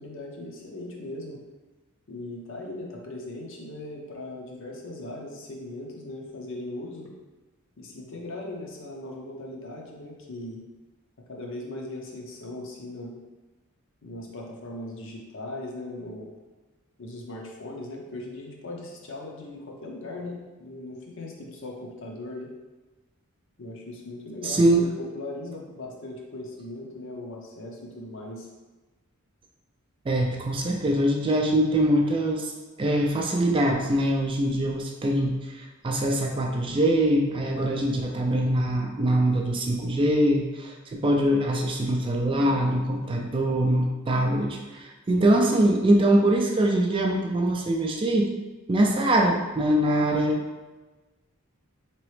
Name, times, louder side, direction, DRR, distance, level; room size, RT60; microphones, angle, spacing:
voice 1, 0.0-1.4 2.1-7.1 7.8-10.6 11.3-13.1 14.0-16.3 17.0-22.5 23.6-28.5 49.0-49.2 49.6-49.7, left 2 dB, 60° left, -1 dB, 0.7 m, -39 dB
voice 2, 24.4-24.9 30.1-32.5 32.8-48.3 48.7-50.4, right 1 dB, 25° right, 1 dB, 0.3 m, -23 dB
3.8 x 3.0 x 3.2 m, 1.2 s
head